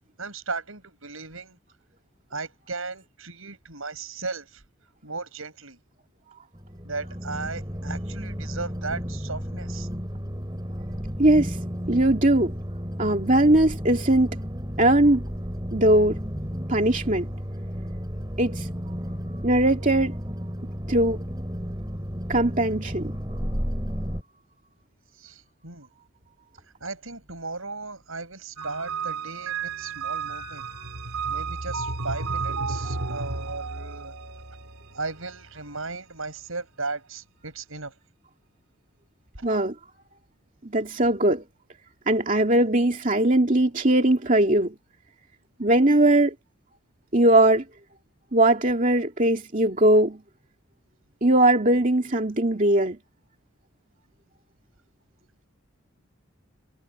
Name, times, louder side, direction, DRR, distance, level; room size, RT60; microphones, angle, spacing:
voice 1, 0.2-1.6 2.3-4.6 5.0-5.8 6.8-9.9 25.2-25.9 26.8-30.6 31.3-34.1 34.9-37.9 39.3-39.5, right 3 dB, 70° right, 6.4 m, -36 dB
sound 1, 6.5-24.2, equal, 20° right, 6.0 m, -33 dB
voice 2, 11.2-11.6 11.9-12.5 13.0-14.4 14.8-15.2 15.7-16.2 16.7-17.3 18.4-18.7 19.4-20.2 20.9-21.2 22.3-23.1 39.4-39.7 40.6-41.4 42.1-44.7 45.6-46.3 47.1-47.6 48.3-50.2 51.2-53.0, right 1 dB, 35° right, 2.5 m, -20 dB
sound 2, 28.6-35.9, right 4 dB, 90° right, 3.8 m, -32 dB
head